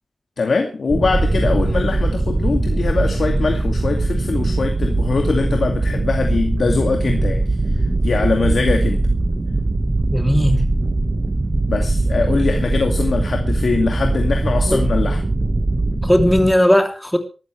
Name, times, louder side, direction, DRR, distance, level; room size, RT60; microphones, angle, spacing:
voice 1, 0.4-7.4 8.0-9.1 11.7-15.2, left 4 dB, 70° left, 3 dB, 2.3 m, -22 dB
sound 1, 0.9-16.5, right 2 dB, 35° right, 1.5 m, -20 dB
voice 2, 10.1-10.7 14.7-14.8 16.0-17.2, equal, 5° left, 4 dB, 3.1 m, -17 dB
24.0 x 13.0 x 3.4 m, 0.35 s
wide cardioid pair, 75°, 0 cm